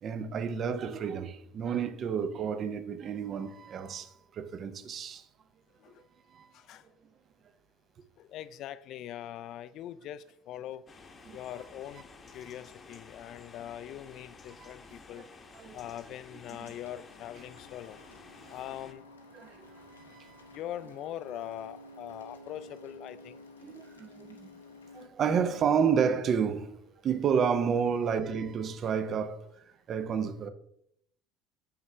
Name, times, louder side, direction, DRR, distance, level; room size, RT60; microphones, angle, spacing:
voice 1, 0.0-5.3 6.3-6.5 11.3-11.4 14.6-14.7 15.5-15.8 16.6-16.7 19.3-19.7 20.1-20.4 23.6-24.6 24.9-29.5 29.9-30.5, right 7 dB, 40° right, 0.7 m, -30 dB
voice 2, 6.5-6.9 8.2-10.8 11.3-15.3 15.7-18.0 18.5-19.0 20.5-23.4, left 12 dB, 50° left, 0.4 m, -42 dB
sound 1, 10.9-18.9, left 4 dB, 30° left, 0.9 m, -52 dB
sound 2, 16.5-25.1, left 1 dB, 85° left, 0.8 m, -52 dB
6.6 x 5.7 x 3.3 m
figure-of-eight pair, 65°, 0 cm